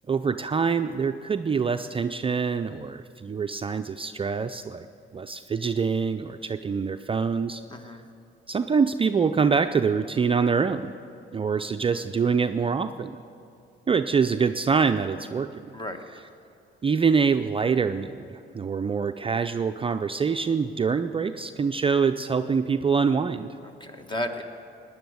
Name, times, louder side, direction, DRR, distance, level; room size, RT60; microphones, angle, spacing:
voice 1, 0.1-4.9 5.1-7.6 8.5-10.9 11.3-13.2 13.9-15.6 16.8-23.6, right 5 dB, 25° right, 8 dB, 0.4 m, -25 dB
voice 2, 7.7-8.0 15.7-16.2 23.6-24.4, left 1 dB, 25° left, 6 dB, 1.4 m, -34 dB
17.5 x 10.0 x 7.9 m, 2.6 s
cardioid pair, 90°, 20 cm